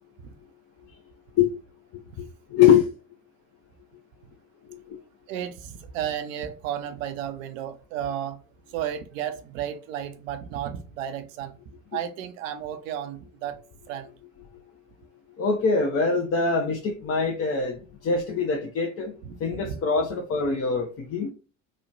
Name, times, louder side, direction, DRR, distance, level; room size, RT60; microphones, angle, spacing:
voice 1, 2.2-2.9 4.7-5.0 15.4-19.1 19.4-21.3, left 6 dB, 35° left, 0.5 m, -23 dB
voice 2, 5.3-8.4 8.7-11.5 11.9-13.6 13.9-14.1 19.2-19.8, right 10 dB, 70° right, 0.5 m, -33 dB
3.0 x 2.1 x 2.5 m
figure-of-eight pair, 55°, 41 cm